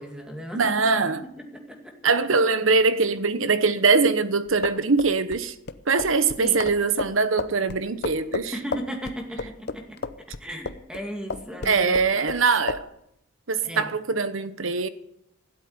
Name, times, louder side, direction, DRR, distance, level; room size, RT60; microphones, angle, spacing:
voice 1, 0.0-0.7 1.1-1.9 6.4-6.6 8.5-10.0 10.4-12.0 13.6-13.9, equal, 5° right, 2.4 m, -36 dB
voice 2, 0.5-1.3 2.0-5.5 5.9-8.5 11.6-12.9 13.5-14.9, right 4 dB, 70° right, 1.1 m, -22 dB
sound 1, 4.5-11.0 11.3-12.4 12.7-12.9, left 4 dB, 50° left, 0.7 m, -32 dB
16.5 x 8.2 x 9.6 m
head